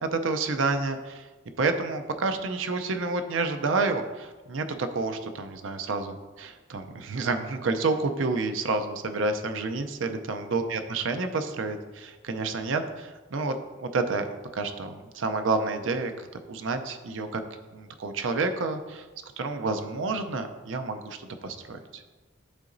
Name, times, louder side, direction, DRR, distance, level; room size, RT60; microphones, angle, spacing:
voice 1, 0.0-1.3 1.6-13.5 13.8-14.3 14.5-16.1 16.5-17.4 17.7-19.1 19.4-22.0, right 3 dB, 70° right, 8 dB, 0.5 m, -29 dB
11.5 x 3.8 x 2.6 m, 1.3 s
head